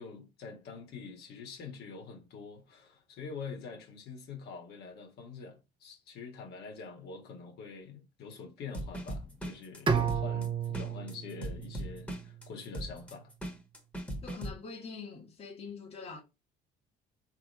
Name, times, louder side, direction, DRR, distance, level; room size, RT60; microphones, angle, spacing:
voice 1, 0.0-13.3, left 5 dB, 75° left, 1.7 m, -45 dB
sound 1, 8.7-14.5, equal, 10° left, 1.4 m, -39 dB
Bowed string instrument, 9.9-12.9, right 7 dB, 30° right, 0.8 m, -33 dB
voice 2, 14.2-16.2, left 5 dB, 35° left, 1.5 m, -44 dB
3.4 x 3.3 x 4.2 m
cardioid pair, 110°, 17 cm